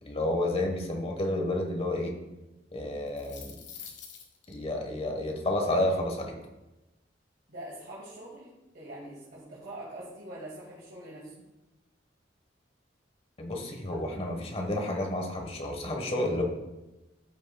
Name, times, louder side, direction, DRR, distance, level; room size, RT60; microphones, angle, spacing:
voice 1, 0.0-2.1 2.7-3.6 4.5-6.3 13.4-16.4, left 1 dB, 35° left, 2 dB, 1.3 m, -30 dB
sound 1, 2.9-4.5, left 7 dB, 75° left, 1.3 m, -46 dB
voice 2, 7.5-11.5, right 1 dB, 60° right, -7 dB, 2.1 m, -44 dB
14.5 x 6.2 x 2.3 m, 1.0 s
head